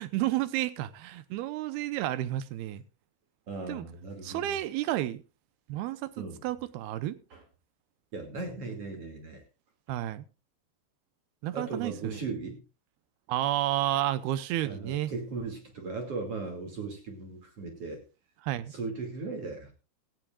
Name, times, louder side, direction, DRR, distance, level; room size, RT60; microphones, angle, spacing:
voice 1, 0.0-2.8 3.7-3.9 4.2-5.2 5.7-7.2 9.9-10.2 11.4-12.2 13.3-15.1 18.4-18.7, right 14 dB, 80° right, 2.7 m, -31 dB
voice 2, 3.5-4.6 6.2-6.4 7.3-7.4 8.1-9.4 11.5-12.6 14.6-18.0 18.7-19.7, right 3 dB, 40° right, 3.1 m, -37 dB
17.0 x 15.0 x 2.4 m
omnidirectional pair, 4.6 m